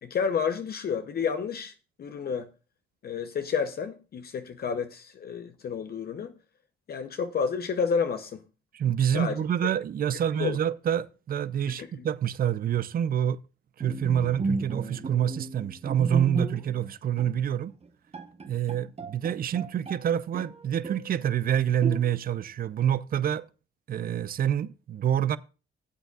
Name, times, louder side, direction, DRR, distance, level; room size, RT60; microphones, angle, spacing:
voice 1, 0.0-2.5 3.0-6.3 6.9-8.4 9.1-9.4 10.4-10.6 11.8-12.1, left 6 dB, 50° left, 0.8 m, -30 dB
voice 2, 8.7-13.4 13.8-17.7 18.5-23.4 23.9-25.4, right 9 dB, 45° right, 0.5 m, -27 dB
Bowed string instrument, 13.8-16.9 17.2-17.4 17.8-17.9 18.1-20.0 20.3-21.2 21.8-22.4, right 3 dB, 30° right, 1.0 m, -34 dB
16.5 x 8.0 x 2.4 m
cardioid pair, 90°, 20 cm